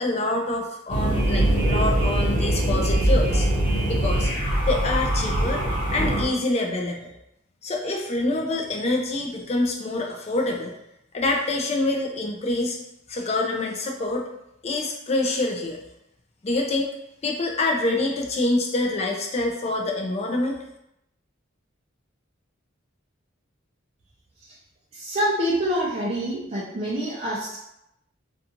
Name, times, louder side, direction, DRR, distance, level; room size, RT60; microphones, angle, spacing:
voice 1, 0.0-3.5 3.9-4.3 4.7-5.6 5.9-7.1 7.6-10.7 11.1-12.8 13.1-14.3 14.6-15.8 16.4-16.9 17.2-20.6, left 2 dB, 30° left, 1 dB, 0.4 m, -26 dB
sound 1, 0.9-6.3, right 1 dB, 75° left, 1.4 m, -22 dB
voice 2, 24.9-27.6, equal, 30° right, -6 dB, 0.4 m, -26 dB
2.5 x 2.3 x 2.8 m, 0.82 s
head